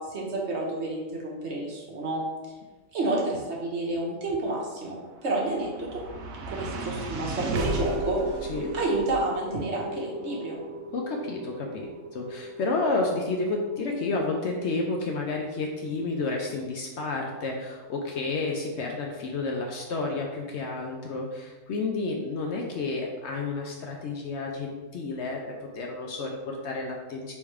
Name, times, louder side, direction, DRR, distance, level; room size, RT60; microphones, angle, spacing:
voice 1, 0.0-2.2 2.9-6.0 6.5-8.4 8.7-10.6, right 2 dB, 55° right, -3 dB, 1.2 m, -30 dB
sound 1, 5.0-17.3, right 2 dB, 80° right, 1.0 m, -35 dB
voice 2, 10.9-25.4 25.7-27.3, left 3 dB, 65° left, 1 dB, 0.8 m, -31 dB
3.5 x 3.1 x 4.6 m, 1.2 s
omnidirectional pair, 1.4 m